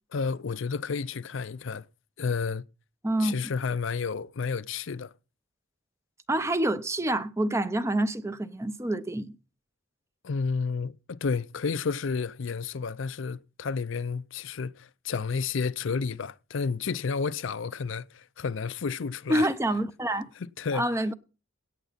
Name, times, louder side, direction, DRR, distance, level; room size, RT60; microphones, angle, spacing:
voice 1, 0.1-1.9 2.2-2.6 3.2-5.1 10.2-19.5 20.4-20.9, left 5 dB, 65° left, 0.5 m, -31 dB
voice 2, 3.0-3.3 6.3-9.4 19.3-20.3 20.7-21.1, right 1 dB, 15° right, 0.5 m, -27 dB
17.0 x 8.1 x 4.0 m
head